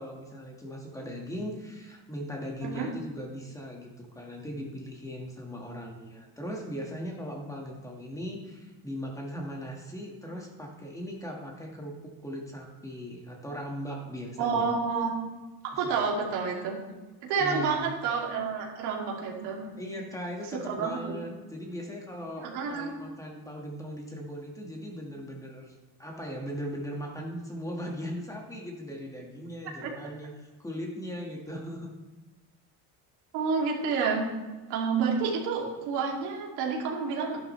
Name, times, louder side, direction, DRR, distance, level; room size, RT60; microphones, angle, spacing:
voice 1, 0.0-14.6 15.8-15.9 17.4-17.9 19.8-25.7 26.0-31.9, equal, 10° left, 0 dB, 1.7 m, -39 dB
voice 2, 14.4-15.1 15.6-16.8 17.3-19.6 20.7-21.1 22.4-22.9 29.8-29.9 33.3-34.3 34.7-37.4, right 5 dB, 80° right, -1 dB, 2.7 m, -29 dB
12.0 x 11.0 x 3.2 m, 1.2 s
cardioid pair, 130°, 39 cm